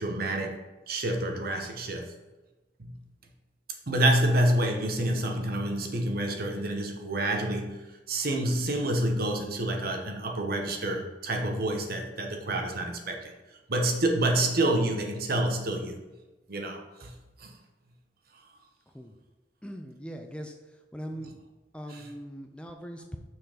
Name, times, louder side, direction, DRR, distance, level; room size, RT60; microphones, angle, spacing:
voice 1, 0.0-2.1 2.8-3.0 3.9-13.3 13.7-16.0 16.5-17.1 17.4-17.5 21.9-22.1, right 1 dB, 55° right, 3 dB, 1.0 m, -28 dB
voice 2, 19.6-20.5 20.9-21.3 21.7-23.2, equal, 5° left, 4 dB, 0.4 m, -40 dB
6.2 x 4.6 x 5.0 m, 1.1 s
head